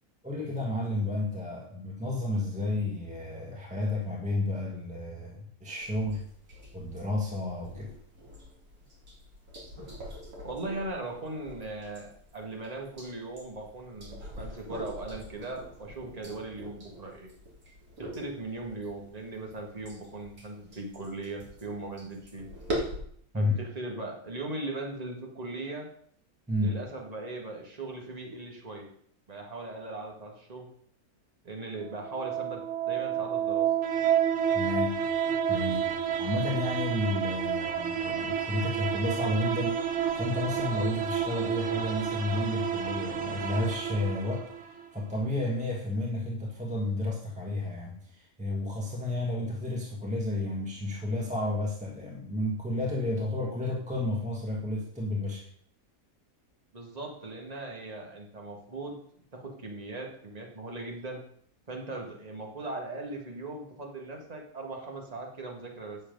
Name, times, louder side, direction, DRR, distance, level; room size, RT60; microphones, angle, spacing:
voice 1, 0.2-6.3 6.7-8.0 23.3-23.5 26.5-26.8 34.5-35.0 35.5-55.5, left 2 dB, 5° right, -2 dB, 1.5 m, -32 dB
sound 1, 5.8-23.0, equal, 75° right, 2.8 m, -43 dB
voice 2, 10.4-17.3 18.0-22.5 23.3-25.9 26.6-28.9 29.3-30.7 31.4-33.7 56.7-59.0 59.3-61.2 61.7-66.0, right 2 dB, 25° right, 1 dB, 1.8 m, -39 dB
sound 2, 31.9-44.9, right 8 dB, 55° right, 1.2 m, -30 dB
9.0 x 7.3 x 5.3 m, 0.63 s
omnidirectional pair, 1.6 m